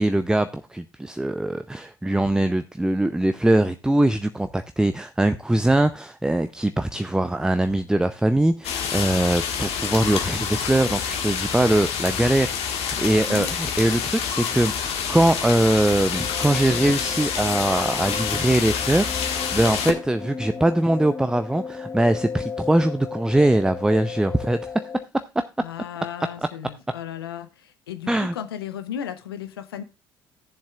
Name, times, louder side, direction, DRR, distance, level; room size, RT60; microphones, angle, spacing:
voice 1, 0.0-24.7 28.1-28.3, right 1 dB, 5° right, 0.6 m, -22 dB
sound 1, 8.6-19.9, left 7 dB, 55° left, 1.6 m, -27 dB
sound 2, 16.1-25.0, left 6 dB, 25° left, 1.5 m, -35 dB
voice 2, 25.6-29.8, left 9 dB, 80° left, 0.8 m, -35 dB
15.0 x 7.3 x 2.4 m
figure-of-eight pair, 50°, 12 cm